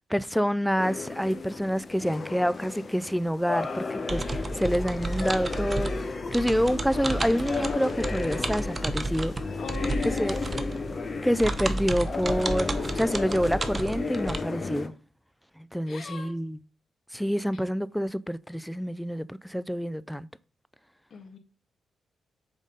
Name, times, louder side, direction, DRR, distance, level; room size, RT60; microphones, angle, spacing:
voice 1, 0.0-9.3 10.2-10.4 11.2-14.9 15.7-16.6 17.1-20.3, equal, ahead, 0.4 m, -27 dB
sound 1, 0.8-14.9, left 4 dB, 45° left, 1.0 m, -34 dB
sound 2, 4.1-14.4, right 2 dB, 30° right, 0.9 m, -32 dB
voice 2, 9.6-10.7 15.9-16.3 21.1-21.4, left 5 dB, 60° left, 1.6 m, -39 dB
7.2 x 4.0 x 5.4 m
cardioid pair, 70°, 0 cm